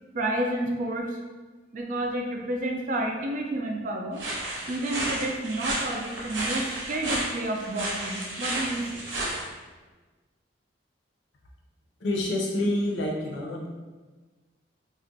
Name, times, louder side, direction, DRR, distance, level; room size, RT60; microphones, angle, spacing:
voice 1, 0.1-1.2 1.7-4.2 4.7-9.1, right 1 dB, 45° right, 1 dB, 0.3 m, -30 dB
sound 1, 4.2-9.4, right 1 dB, 80° right, 0.8 m, -32 dB
voice 2, 12.0-13.7, left 1 dB, 70° left, -1 dB, 0.6 m, -27 dB
2.4 x 2.1 x 3.9 m, 1.3 s
head